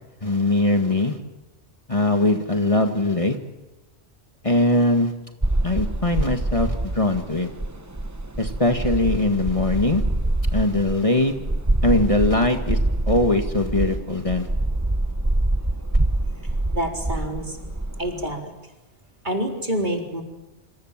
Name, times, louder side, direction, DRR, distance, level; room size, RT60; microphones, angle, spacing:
voice 1, 0.2-1.2 1.9-3.4 4.4-5.1 5.6-7.5 8.4-10.0 10.5-11.3 11.8-12.8 13.1-14.5, left 2 dB, 30° left, 5 dB, 1.9 m, -21 dB
sound 1, 5.4-18.4, right 1 dB, 15° right, 1.1 m, -25 dB
voice 2, 16.7-17.6 18.0-18.5 19.2-20.2, equal, 45° right, 2 dB, 4.3 m, -27 dB
27.5 x 27.0 x 7.5 m, 1.0 s
omnidirectional pair, 1.2 m